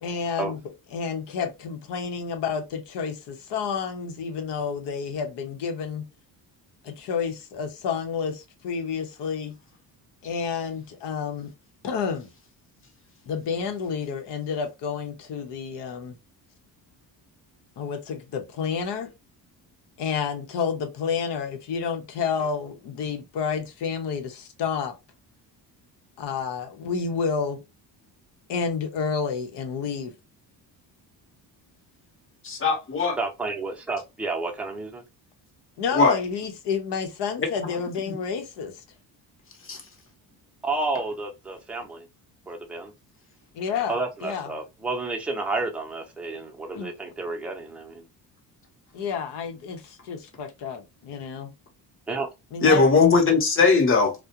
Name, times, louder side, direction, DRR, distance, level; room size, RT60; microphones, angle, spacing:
voice 1, 0.0-0.6 0.9-6.0 6.8-9.5 10.2-11.5 11.8-12.3 13.3-16.2 17.8-19.1 20.0-24.9 26.2-27.6 28.5-30.1 35.8-38.7 43.5-44.5 46.7-46.9 48.9-51.5 52.5-52.8, left 6 dB, 75° left, 0.8 m, -30 dB
voice 2, 32.4-33.2 35.9-36.2 37.6-37.7 38.1-38.2 39.7-39.8 52.6-54.1, left 4 dB, 30° left, 0.8 m, -19 dB
voice 3, 33.2-35.0 40.6-42.1 42.5-42.9 43.9-48.1 52.1-52.3, right 3 dB, 5° right, 0.6 m, -30 dB
2.4 x 2.1 x 2.8 m
cardioid pair, 100°, 42 cm